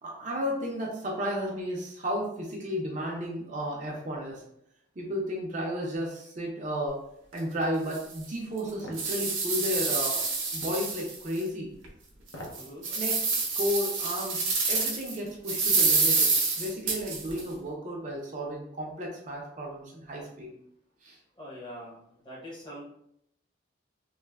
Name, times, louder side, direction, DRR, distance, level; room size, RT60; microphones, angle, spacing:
voice 1, 0.0-4.4 5.0-7.0 7.3-10.2 10.5-11.7 12.8-13.2 13.5-20.5 21.0-21.2, equal, 40° right, -2 dB, 0.4 m, -33 dB
sound 1, 7.3-7.4 7.9-8.0 8.6-11.4 11.8-11.9 12.4-15.1 15.5-17.4, right 4 dB, 75° right, 0.7 m, -27 dB
sound 2, 8.8-9.1 10.6-10.8 12.2-12.7 13.1-13.2, left 1 dB, 75° left, 0.6 m, -42 dB
voice 2, 12.5-12.9 21.4-22.8, equal, 25° left, -5 dB, 0.7 m, -43 dB
3.1 x 2.0 x 2.2 m, 0.73 s
head